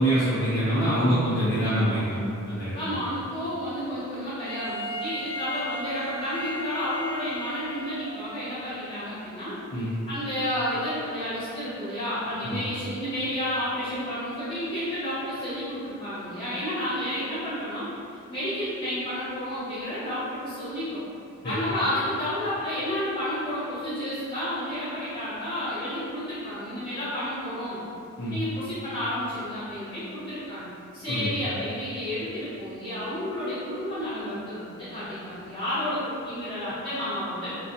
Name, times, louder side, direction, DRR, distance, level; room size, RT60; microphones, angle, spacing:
voice 1, 0.0-3.0 9.7-9.9 12.4-12.6 21.4-21.6 28.2-28.4 31.1-31.3, right 1 dB, 50° left, -11 dB, 0.5 m, -25 dB
voice 2, 2.7-9.6 10.1-17.9 18.3-21.0 21.4-27.8 28.3-37.5, left 1 dB, 20° left, -14 dB, 1.2 m, -31 dB
Wind instrument woodwind instrument, 4.4-8.4, equal, 15° right, 0.8 m, -35 dB
2.4 x 2.2 x 2.6 m, 2.5 s
head